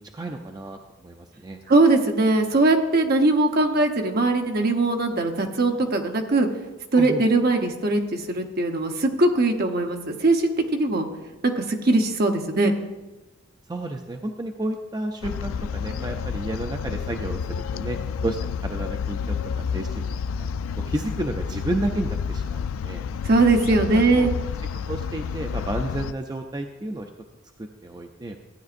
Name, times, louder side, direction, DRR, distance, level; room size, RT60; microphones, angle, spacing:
voice 1, 0.0-1.6 6.9-7.2 13.7-20.5 20.9-23.1 23.9-24.3 24.9-27.1 27.8-28.4, right 1 dB, 20° right, 4 dB, 0.5 m, -31 dB
voice 2, 1.7-6.5 6.9-11.1 11.6-12.7 23.2-24.3, right 2 dB, 50° right, 4 dB, 1.0 m, -20 dB
sound 1, 15.2-26.1, left 6 dB, 85° left, 0.3 m, -30 dB
14.5 x 9.4 x 2.5 m, 1.1 s
head